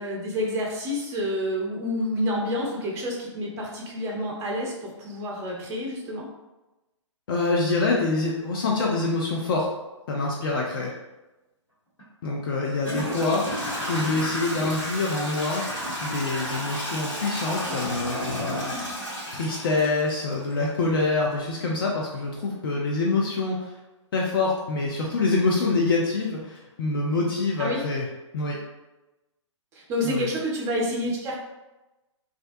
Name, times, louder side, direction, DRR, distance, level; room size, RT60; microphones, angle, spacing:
voice 1, 0.0-6.3 27.6-27.8 29.7-31.3, equal, 20° right, -2 dB, 0.5 m, -28 dB
voice 2, 7.3-9.7 10.1-10.9 12.2-13.4 13.9-15.6 16.0-18.7 19.3-23.7 24.1-28.1 28.3-28.6 30.0-30.3, left 3 dB, 45° left, -3 dB, 0.4 m, -25 dB
Toilet flush / Trickle dribble, 12.0-12.1 12.8-20.6, equal, 75° left, 1.3 m, -32 dB
2.4 x 2.1 x 2.5 m, 1.0 s
figure-of-eight pair, 125°, 16 cm